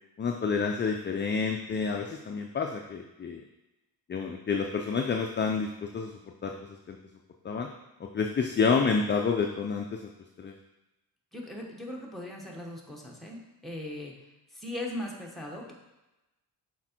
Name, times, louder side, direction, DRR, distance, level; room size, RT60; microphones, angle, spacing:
voice 1, 0.2-3.4 4.1-6.1 6.4-7.0 7.4-7.7 8.0-10.1 10.4-10.5, left 5 dB, 30° left, 2 dB, 0.4 m, -29 dB
voice 2, 11.3-14.1 14.5-15.7, left 1 dB, ahead, -2 dB, 1.0 m, -39 dB
6.1 x 4.5 x 4.4 m, 1.0 s
wide cardioid pair, 145°, 40 cm